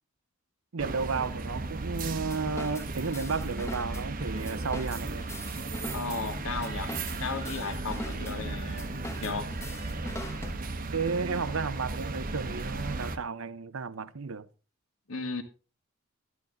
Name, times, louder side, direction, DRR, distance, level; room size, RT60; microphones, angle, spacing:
voice 1, 0.7-5.3 10.9-14.5, right 4 dB, 70° right, 0.7 m, -33 dB
sound 1, 0.8-13.2, right 3 dB, 40° right, 0.9 m, -35 dB
sound 2, 2.0-11.0, left 1 dB, 15° left, 1.1 m, -42 dB
voice 2, 5.9-6.9 7.2-9.5 15.1-15.4, left 4 dB, 75° left, 1.6 m, -35 dB
12.0 x 11.0 x 3.8 m
head